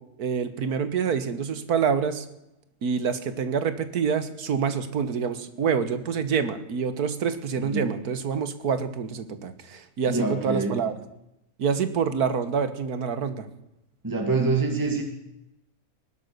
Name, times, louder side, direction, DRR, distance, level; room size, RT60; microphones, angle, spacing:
voice 1, 0.2-2.3 2.8-10.9 11.6-13.5, right 6 dB, 90° right, 12 dB, 1.8 m, -27 dB
voice 2, 7.6-7.9 10.1-10.8 14.0-15.0, right 3 dB, 15° right, 2 dB, 2.0 m, -25 dB
17.5 x 12.0 x 6.8 m, 0.86 s
omnidirectional pair, 1.6 m